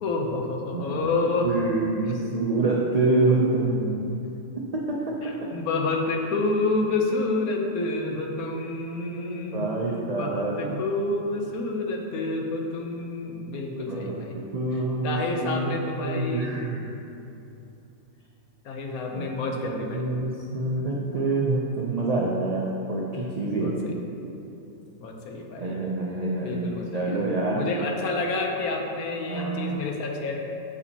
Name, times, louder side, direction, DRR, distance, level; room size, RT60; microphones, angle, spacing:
voice 1, 0.0-1.5 5.2-9.7 10.1-14.4 15.0-16.5 18.6-20.1 23.4-23.9 25.0-25.8 26.4-30.4, left 3 dB, 80° left, 2 dB, 1.2 m, -29 dB
voice 2, 0.7-1.1 1.4-4.2 4.5-5.6 9.5-10.8 13.9-15.8 16.0-17.1 19.1-19.2 19.8-24.0 25.6-27.7 29.3-29.8, right 2 dB, 65° right, -3 dB, 0.4 m, -27 dB
7.0 x 7.0 x 2.8 m, 2.8 s
omnidirectional pair, 1.5 m